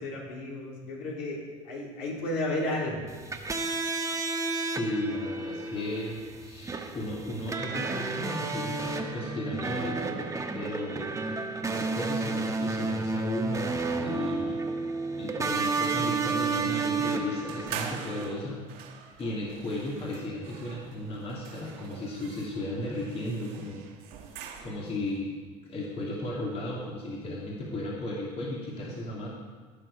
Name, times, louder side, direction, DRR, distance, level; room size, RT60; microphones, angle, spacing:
voice 1, 0.0-3.1, left 1 dB, 65° left, -3 dB, 3.5 m, -33 dB
sound 1, 3.1-18.3, right 3 dB, 20° right, 1.3 m, -31 dB
voice 2, 4.6-11.4 11.7-14.7 15.2-18.6 19.2-23.8 24.2-25.3 25.7-29.3, left 1 dB, 40° left, -4 dB, 2.9 m, -35 dB
sound 2, 17.5-25.0, right 7 dB, 65° right, 1.7 m, -43 dB
17.5 x 6.7 x 5.0 m, 1.5 s
hypercardioid pair, 85°, 16 cm